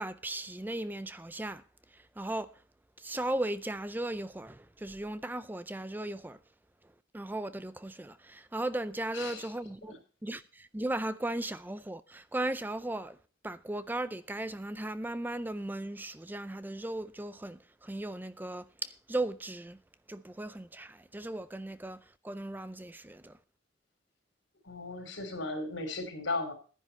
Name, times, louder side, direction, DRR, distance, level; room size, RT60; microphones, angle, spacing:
voice 1, 0.0-1.6 1.9-2.6 3.0-6.4 7.1-9.9 10.2-13.2 13.4-19.8 20.1-23.3, right 1 dB, 10° right, 0.4 m, -37 dB
voice 2, 24.6-26.5, left 2 dB, 85° left, 4.0 m, -36 dB
12.0 x 10.0 x 4.3 m
head